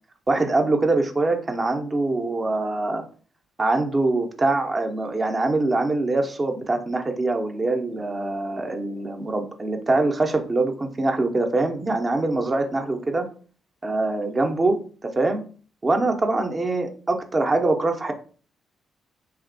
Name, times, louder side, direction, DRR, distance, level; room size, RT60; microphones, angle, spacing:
voice 1, 0.3-3.0 3.6-13.3 13.8-15.4 15.8-18.1, right 2 dB, 35° right, 5 dB, 0.7 m, -23 dB
3.4 x 2.8 x 2.5 m, 0.40 s
hypercardioid pair, 40°, 0 cm